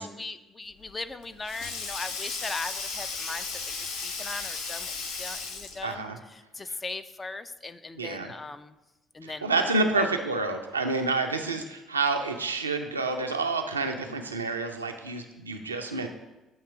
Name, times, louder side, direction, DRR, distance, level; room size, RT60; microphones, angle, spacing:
voice 1, 0.0-3.8 4.0-8.8 9.1-9.7 10.0-10.1, left 3 dB, 25° left, 11 dB, 0.4 m, -39 dB
Sink (filling or washing), 0.8-6.0, left 4 dB, 60° left, 0.6 m, -35 dB
voice 2, 5.8-6.2 8.0-8.3 9.2-16.1, right 3 dB, 80° right, 5 dB, 0.4 m, -28 dB
7.1 x 3.0 x 5.8 m, 1.0 s
figure-of-eight pair, 50°, 0 cm